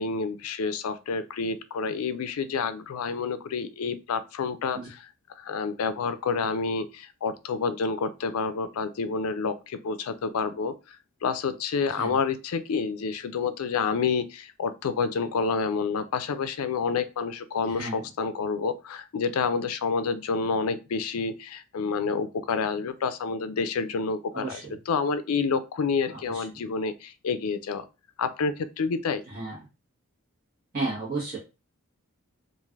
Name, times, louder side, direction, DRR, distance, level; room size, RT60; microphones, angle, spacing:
voice 1, 0.0-4.8 5.4-10.7 11.2-24.6 24.9-27.8 28.2-29.2, left 5 dB, 80° left, 11 dB, 0.4 m, -28 dB
voice 2, 11.8-12.2 17.6-18.0 24.3-24.8 26.1-26.6 29.3-29.6 30.7-31.4, right 3 dB, 40° right, -9 dB, 1.3 m, -34 dB
3.1 x 2.5 x 2.3 m, 0.29 s
head